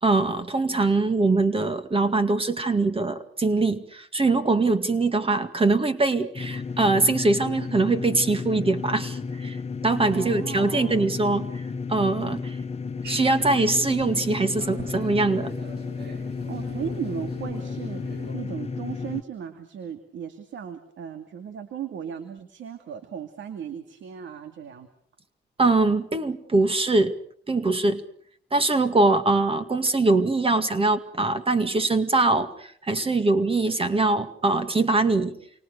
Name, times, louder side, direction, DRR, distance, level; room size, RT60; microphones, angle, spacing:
voice 1, 0.0-9.6 9.8-11.6 11.9-12.6 13.1-15.5 25.6-27.2 27.5-28.0 28.5-35.4, right 3 dB, 30° right, 9 dB, 2.1 m, -22 dB
sound 1, 6.3-19.2, left 4 dB, 30° left, 1.4 m, -33 dB
voice 2, 10.1-11.1 16.5-18.0 18.3-24.9, right 8 dB, 70° right, 8 dB, 2.5 m, -36 dB
sound 2, 13.0-18.4, right 3 dB, 55° right, 7.2 m, -44 dB
29.0 x 25.0 x 6.7 m, 0.63 s
cardioid pair, 90°, 20 cm